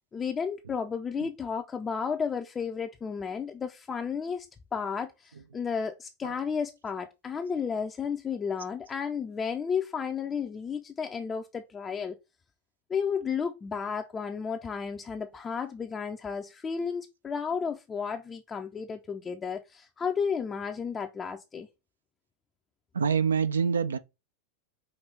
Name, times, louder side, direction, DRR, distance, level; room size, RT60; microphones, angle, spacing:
voice 1, 0.1-4.5 4.7-12.2 12.9-21.7, left 6 dB, 20° left, 0.4 m, -33 dB
voice 2, 22.9-24.0, right 6 dB, 70° right, 0.4 m, -26 dB
5.1 x 3.0 x 3.3 m
figure-of-eight pair, 90°, 0 cm